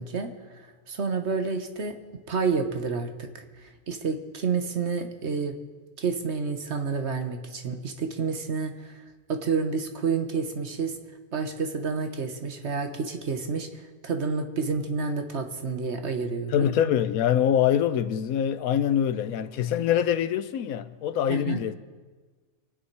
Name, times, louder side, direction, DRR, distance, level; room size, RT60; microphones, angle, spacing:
voice 1, 0.0-2.0 2.3-5.6 6.0-9.0 9.3-10.9 11.3-16.7 21.3-21.6, right 5 dB, 55° right, 1.4 m, -29 dB
voice 2, 16.5-21.8, left 9 dB, 80° left, 1.2 m, -24 dB
24.5 x 9.4 x 4.7 m
omnidirectional pair, 1.5 m